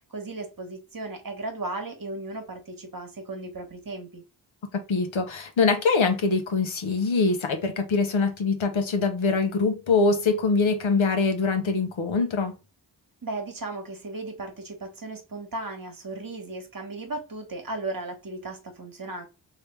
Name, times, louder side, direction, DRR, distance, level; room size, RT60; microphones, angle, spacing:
voice 1, 0.1-4.2 13.2-19.3, right 2 dB, 45° right, 1.2 m, -36 dB
voice 2, 4.9-12.6, left 4 dB, 75° left, 0.9 m, -23 dB
3.3 x 2.8 x 3.2 m
cardioid pair, 45°, 47 cm